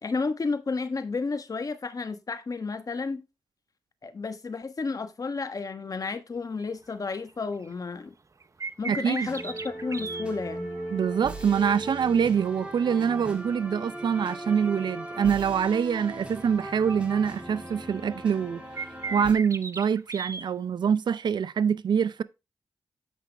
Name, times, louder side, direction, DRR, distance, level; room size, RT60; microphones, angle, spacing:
voice 1, 0.0-3.2 4.0-8.1 8.8-10.7, left 4 dB, 50° left, 1.3 m, -32 dB
sound 1, 6.6-6.7 7.2-7.3 7.6-7.7 8.4-10.2 14.3-14.4 15.2-16.1 16.5-16.6 17.0-17.1 17.3-18.3 18.8-20.4, right 4 dB, 40° right, 0.8 m, -37 dB
voice 2, 8.9-9.3 10.9-18.6 19.1-22.2, right 7 dB, 70° right, 0.5 m, -25 dB
sound 2, 9.2-19.3, right 1 dB, 15° right, 2.7 m, -38 dB
8.3 x 5.9 x 3.4 m
cardioid pair, 55°, 8 cm